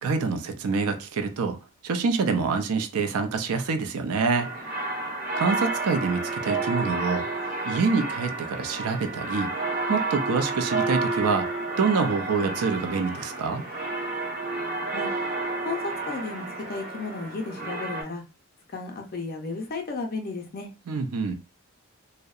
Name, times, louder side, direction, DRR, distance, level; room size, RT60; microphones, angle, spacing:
voice 1, 0.0-4.5 5.4-7.3 7.6-9.5 9.9-13.6 20.9-21.3, right 4 dB, 85° right, 0.4 m, -26 dB
sound 1, 4.3-18.0, right 3 dB, 45° right, 0.7 m, -30 dB
voice 2, 15.6-18.2 18.7-20.7, left 3 dB, 40° left, 0.4 m, -34 dB
2.7 x 2.0 x 2.3 m
head